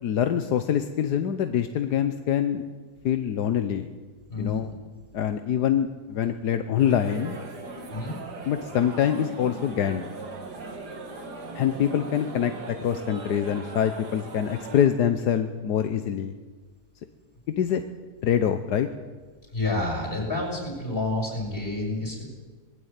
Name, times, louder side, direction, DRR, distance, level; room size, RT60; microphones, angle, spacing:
voice 1, 0.0-2.6 3.0-3.9 4.4-4.7 5.1-7.4 8.4-10.1 11.5-16.4 17.6-17.8 18.2-18.9, left 9 dB, 80° left, 9 dB, 1.5 m, -25 dB
voice 2, 4.3-4.7 7.9-8.2 19.5-22.2, left 2 dB, 35° left, 0 dB, 7.3 m, -29 dB
sound 1, 6.8-14.9, right 3 dB, 80° right, 2.9 m, -39 dB
20.5 x 16.0 x 8.9 m, 1.4 s
omnidirectional pair, 1.7 m